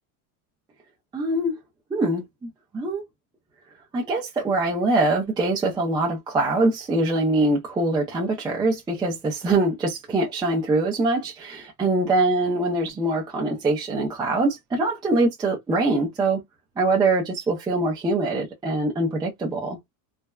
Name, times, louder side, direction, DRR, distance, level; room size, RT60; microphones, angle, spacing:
voice 1, 1.1-1.6 1.9-3.0 3.9-16.4 16.8-19.8, right 2 dB, 10° right, 0.5 m, -23 dB
3.3 x 2.2 x 2.2 m
cardioid pair, 150°, 47 cm